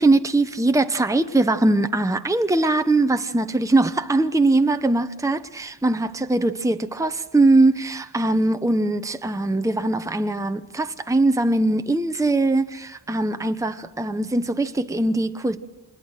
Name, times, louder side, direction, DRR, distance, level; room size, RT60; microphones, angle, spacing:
voice 1, 0.0-15.6, right 2 dB, 5° right, 0.8 m, -21 dB
26.5 x 21.0 x 6.5 m
wide cardioid pair, 45°, 48 cm